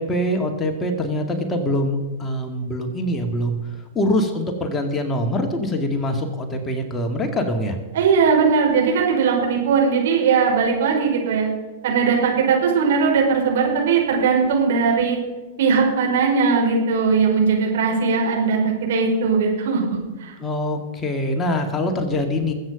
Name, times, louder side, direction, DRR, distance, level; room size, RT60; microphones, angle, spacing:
voice 1, 0.0-3.6 3.9-7.8 20.4-22.5, left 1 dB, 20° left, 4 dB, 2.3 m, -24 dB
voice 2, 7.9-11.5 11.8-15.2 15.6-20.3, right 5 dB, 65° right, 0 dB, 5.1 m, -19 dB
21.5 x 8.6 x 5.3 m, 1.2 s
figure-of-eight pair, 100°, 0 cm